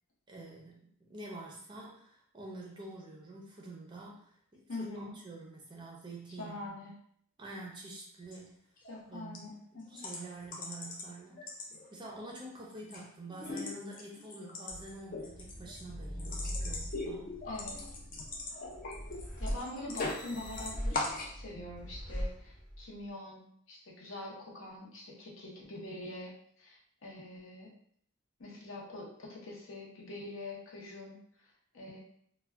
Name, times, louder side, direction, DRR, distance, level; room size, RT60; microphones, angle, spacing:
voice 1, 0.3-6.8 7.4-8.6 9.1-11.4 11.9-17.4, right 2 dB, 20° right, -2 dB, 0.5 m, -47 dB
voice 2, 4.7-5.2 6.4-6.9 8.9-10.0 17.4-18.0 19.4-27.7 28.4-32.0, left 2 dB, 70° left, -3 dB, 0.8 m, -44 dB
sound 1, 8.2-8.4 8.8-9.0 9.3-9.4 9.9-11.1 11.4-12.1 12.5-13.0 13.3-20.3 20.5-21.3, left 2 dB, 40° left, 0.4 m, -40 dB
sound 2, 14.7-23.0, equal, 10° left, 0.8 m, -41 dB
2.3 x 2.2 x 3.3 m, 0.66 s
head